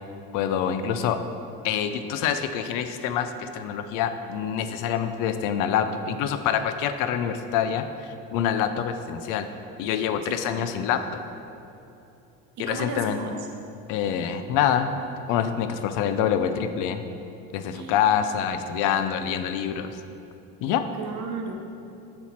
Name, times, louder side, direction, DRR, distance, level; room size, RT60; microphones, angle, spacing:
voice 1, 0.3-1.2 1.6-7.8 8.3-9.5 9.8-11.0 12.6-13.2 13.9-14.9 15.3-17.0 17.5-19.9 20.6-20.8, left 8 dB, 65° left, 9 dB, 0.4 m, -26 dB
voice 2, 10.3-10.6 12.6-13.4 17.7-18.0 21.0-21.6, right 3 dB, 50° right, 2 dB, 0.8 m, -34 dB
5.8 x 4.3 x 4.2 m, 2.8 s
cardioid pair, 120°, 36 cm